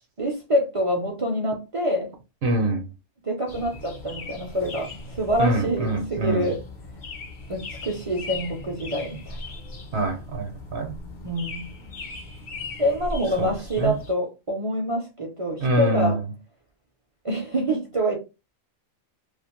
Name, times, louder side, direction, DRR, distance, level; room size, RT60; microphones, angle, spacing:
voice 1, 0.2-2.1 3.2-6.6 7.5-9.4 11.2-11.7 12.8-16.2 17.2-18.2, equal, 45° right, 0.4 m, -26 dB
voice 2, 2.4-2.9 5.4-6.5 9.9-11.0 13.4-14.0 15.6-16.2, right 2 dB, 60° right, 0.9 m, -25 dB
sound 1, 3.5-14.1, left 3 dB, 50° left, 0.6 m, -39 dB
2.5 x 2.5 x 2.9 m
omnidirectional pair, 1.3 m